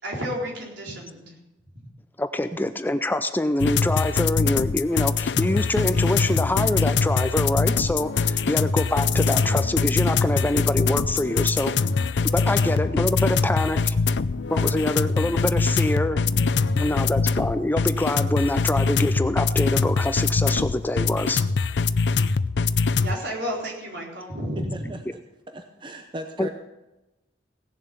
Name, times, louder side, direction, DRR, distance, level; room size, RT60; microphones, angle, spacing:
voice 1, 0.0-1.4 23.0-24.9, equal, 75° right, -2 dB, 4.3 m, -31 dB
voice 2, 2.2-11.9 12.2-14.0 14.5-16.2 16.8-21.4 26.4-26.5, left 1 dB, 10° left, 10 dB, 0.5 m, -25 dB
sound 1, 3.6-23.1, left 4 dB, 70° left, 0.5 m, -23 dB
voice 3, 16.6-17.0 22.8-22.9 24.7-25.2 25.5-26.5, right 1 dB, 25° right, 5 dB, 0.8 m, -37 dB
17.5 x 7.3 x 6.9 m, 1.0 s
head